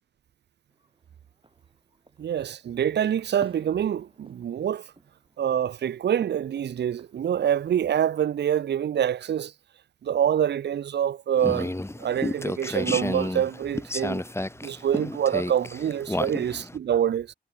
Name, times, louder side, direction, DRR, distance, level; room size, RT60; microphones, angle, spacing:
sound 1, 0.7-8.2, right 2 dB, 30° right, 4.6 m, -52 dB
voice 1, 2.2-4.9 5.4-9.5 10.0-11.7 12.0-14.2 14.6-17.3, right 9 dB, 70° right, 0.4 m, -26 dB
sound 2, 11.4-16.8, left 1 dB, 15° left, 1.3 m, -31 dB
wide cardioid pair, 80°, 18 cm